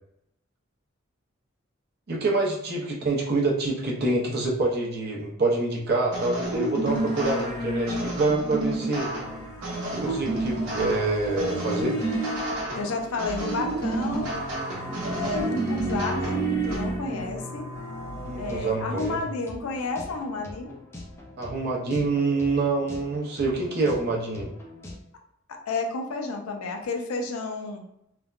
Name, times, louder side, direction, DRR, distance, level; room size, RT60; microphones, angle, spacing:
voice 1, 2.1-9.1 9.9-12.0 18.2-19.2 21.4-24.5, right 3 dB, 50° right, -1 dB, 0.6 m, -26 dB
sound 1, 6.1-16.8, right 2 dB, 80° right, 0.8 m, -31 dB
sound 2, 6.8-18.8, right 1 dB, 60° left, 1.5 m, -33 dB
voice 2, 12.7-14.3 15.2-17.7 18.3-20.8 25.5-27.9, left 3 dB, 80° left, 4 dB, 0.4 m, -31 dB
sound 3, 18.1-25.0, left 1 dB, 10° left, 0.3 m, -43 dB
3.2 x 2.1 x 2.4 m, 0.79 s
head